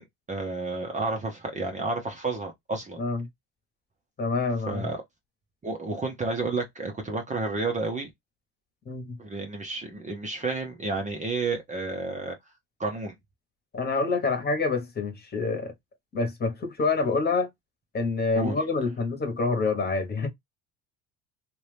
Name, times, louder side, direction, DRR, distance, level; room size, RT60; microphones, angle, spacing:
voice 1, 0.0-3.0 4.7-5.0 5.6-8.1 9.2-12.3 12.8-13.1 18.4-18.5, right 3 dB, 20° right, 0.8 m, -31 dB
voice 2, 3.0-3.3 4.2-4.9 8.8-9.2 13.7-15.7 16.1-17.5 17.9-20.3, left 3 dB, 25° left, 1.3 m, -27 dB
2.8 x 2.5 x 3.3 m
supercardioid pair, 105°, 35 cm